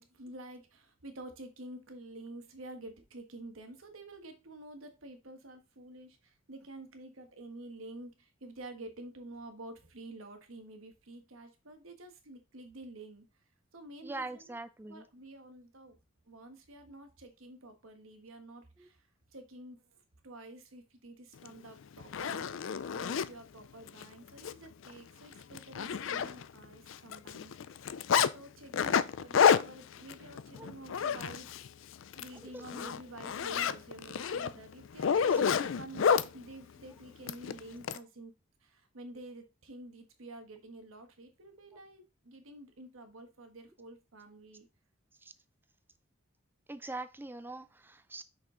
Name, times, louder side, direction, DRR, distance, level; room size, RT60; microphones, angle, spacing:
voice 1, 0.0-13.2 13.7-14.5 14.9-16.0 16.3-19.0 19.3-20.0 20.2-22.5 22.7-27.5 27.8-31.5 31.8-38.3 38.6-44.7, right 2 dB, 90° right, 6 dB, 1.4 m, -49 dB
voice 2, 14.0-15.0 18.8-18.9 30.6-30.7 32.5-32.7 41.7-41.8 45.2-45.3 46.7-48.2, right 2 dB, 10° right, 12 dB, 0.4 m, -42 dB
Zipper (clothing), 21.5-21.6 22.0-23.3 23.9-24.0 24.4-24.5 24.9-25.0 25.3-26.6 26.9-28.3 28.7-31.7 32.0-32.3 32.6-36.3 37.3-38.0, left 7 dB, 70° left, 0.4 m, -29 dB
6.1 x 5.3 x 3.8 m, 0.29 s
head